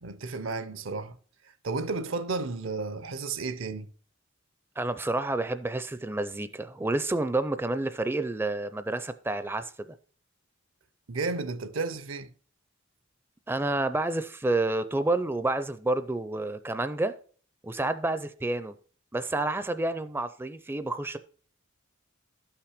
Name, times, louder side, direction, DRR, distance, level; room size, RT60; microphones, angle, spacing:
voice 1, 0.0-1.2 1.6-3.9 11.1-12.3, right 3 dB, 70° right, 0.7 m, -32 dB
voice 2, 4.8-9.9 13.5-17.1 17.6-18.7 19.1-21.2, right 2 dB, 10° right, 0.4 m, -29 dB
12.5 x 5.9 x 5.0 m
head